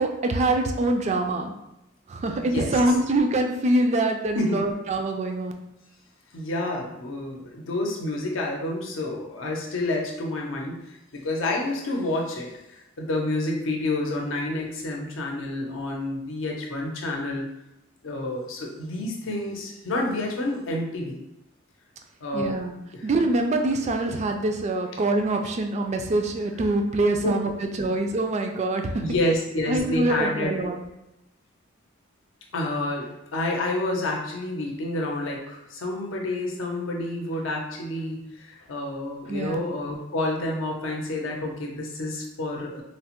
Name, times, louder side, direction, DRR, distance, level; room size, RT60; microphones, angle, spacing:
voice 1, 0.0-1.5 2.1-5.5 22.3-22.8 23.0-29.0 29.7-30.8 39.3-39.6, right 2 dB, 35° right, 4 dB, 0.3 m, -24 dB
voice 2, 2.5-2.9 4.4-4.6 6.3-17.5 18.0-21.2 22.2-22.6 22.9-23.1 29.0-30.5 32.5-42.8, left 2 dB, 75° left, 0 dB, 0.6 m, -29 dB
3.1 x 2.1 x 2.9 m, 0.88 s
head